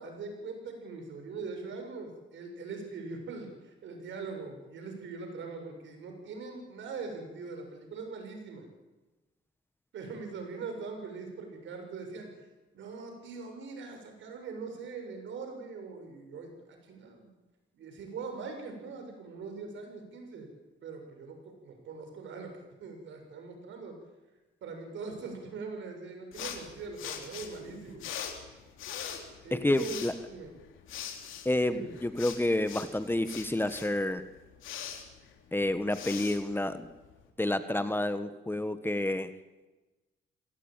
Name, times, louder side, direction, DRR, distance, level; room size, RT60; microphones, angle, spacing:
voice 1, 0.0-8.7 9.9-12.3 12.7-17.3 17.8-20.5 20.8-22.5 22.8-23.9 24.6-28.0 29.4-30.0 30.3-30.5 31.7-31.9, right 4 dB, 70° right, 4 dB, 7.0 m, -42 dB
sound 1, 26.3-37.3, left 8 dB, 85° left, 3.5 m, -43 dB
voice 2, 29.5-30.1 31.4-34.2 35.5-36.9 37.4-39.3, left 1 dB, 10° left, 11 dB, 1.4 m, -29 dB
26.5 x 17.5 x 9.2 m, 1.1 s
cardioid pair, 90°, 20 cm